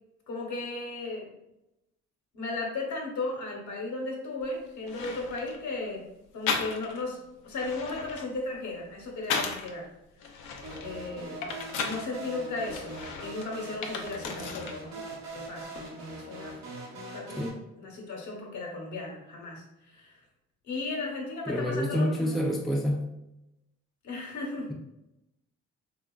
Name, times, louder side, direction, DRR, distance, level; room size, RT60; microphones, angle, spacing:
voice 1, 0.3-1.3 2.3-6.1 6.3-9.9 10.8-11.4 11.8-16.6 16.9-17.5 17.8-20.2 20.6-22.3 24.0-24.7, left 3 dB, 70° left, 0 dB, 0.9 m, -36 dB
sound 1, 4.4-4.5 4.9-5.6 6.5-7.1 7.4-9.7 10.2-12.1 12.6-14.8 15.1-15.9, left 5 dB, 85° left, 0.5 m, -35 dB
sound 2, 10.6-17.5, right 2 dB, 65° right, 0.8 m, -42 dB
voice 2, 21.5-23.1, equal, ahead, 0 dB, 0.3 m, -27 dB
2.9 x 2.3 x 2.3 m, 0.89 s
cardioid pair, 90°, 30 cm